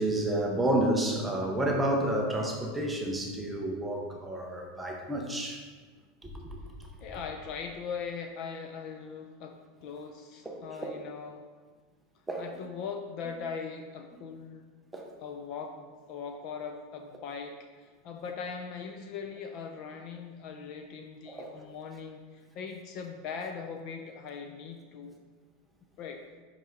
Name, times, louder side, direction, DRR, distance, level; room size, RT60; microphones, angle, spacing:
voice 1, 0.0-5.6 6.2-6.9 10.4-11.0 12.3-12.4 14.9-15.1 21.3-21.5, right 1 dB, 5° right, 0 dB, 0.6 m, -30 dB
voice 2, 7.0-11.4 12.4-14.7 15.2-25.1 26.0-26.2, left 6 dB, 35° left, 5 dB, 0.4 m, -40 dB
5.4 x 5.3 x 3.8 m, 1.4 s
supercardioid pair, 180°, 0 cm